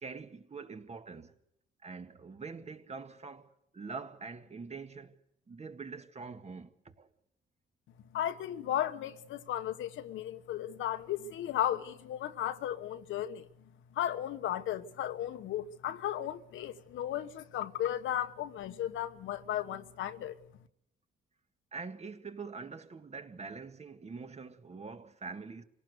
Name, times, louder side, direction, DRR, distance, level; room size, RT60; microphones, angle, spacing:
voice 1, 0.0-1.3 1.8-5.2 5.5-7.1 21.7-25.6, right 4 dB, 35° right, 1.9 m, -44 dB
voice 2, 8.1-13.5 13.9-20.3, left 11 dB, 80° left, 1.4 m, -35 dB
26.5 x 17.5 x 6.6 m
cardioid pair, 90°, 20 cm